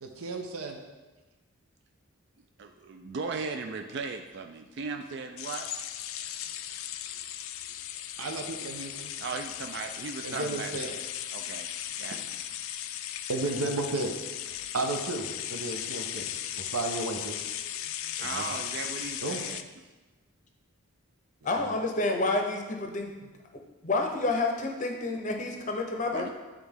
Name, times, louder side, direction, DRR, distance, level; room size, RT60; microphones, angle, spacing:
voice 1, 0.0-0.8 8.2-9.1 10.2-10.9 13.3-14.1 14.7-16.3 16.5-17.5 18.2-18.4 19.2-19.4 21.5-21.7, right 2 dB, 80° right, 3 dB, 0.8 m, -33 dB
voice 2, 2.6-5.7 9.2-11.0 11.3-11.7 12.0-12.2 18.2-19.6 26.1-26.3, right 4 dB, 50° right, 4 dB, 0.3 m, -37 dB
sound 1, 5.4-19.6, left 11 dB, 70° left, 0.3 m, -37 dB
voice 3, 21.4-23.1 23.5-26.3, left 2 dB, 35° left, 3 dB, 0.6 m, -29 dB
9.2 x 3.5 x 3.5 m, 1.2 s
head